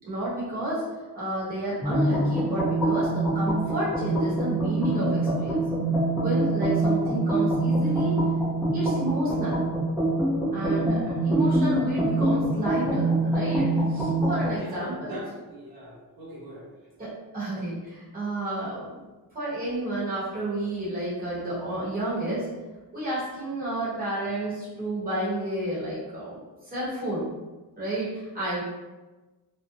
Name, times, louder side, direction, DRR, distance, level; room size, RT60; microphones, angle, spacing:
voice 1, 0.0-0.8 1.1-5.6 6.2-8.1 8.7-9.6 10.5-15.2 17.0-18.9 19.3-22.5 22.9-27.3 27.8-28.6, right 1 dB, 20° right, -9 dB, 1.0 m, -30 dB
sound 1, 1.8-14.6, right 2 dB, 5° right, 0.6 m, -25 dB
voice 2, 14.5-16.7, equal, 65° right, -7 dB, 1.2 m, -41 dB
2.6 x 2.1 x 2.5 m, 1.2 s
wide cardioid pair, 165°, 39 cm